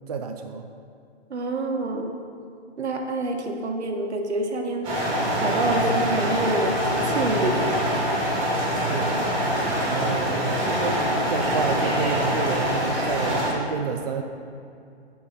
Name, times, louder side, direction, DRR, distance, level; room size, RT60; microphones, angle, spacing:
voice 1, 0.1-0.7 8.9-9.2 9.9-14.2, right 5 dB, 35° right, 4 dB, 0.4 m, -30 dB
voice 2, 1.3-2.1 2.8-7.7, right 2 dB, 75° right, 3 dB, 1.5 m, -27 dB
sound 1, 4.8-13.5, equal, 15° right, 2.5 m, -24 dB
14.5 x 5.4 x 4.3 m, 2.5 s
hypercardioid pair, 155°, 34 cm